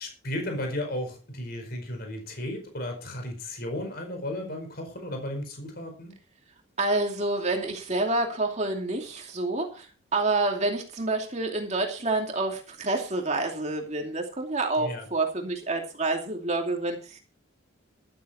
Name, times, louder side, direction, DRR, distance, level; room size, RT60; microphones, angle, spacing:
voice 1, 0.0-6.1 14.8-15.0, left 1 dB, 50° left, 4 dB, 4.9 m, -34 dB
voice 2, 6.8-17.2, right 2 dB, 35° right, 2 dB, 2.7 m, -28 dB
13.5 x 13.0 x 4.4 m, 0.35 s
head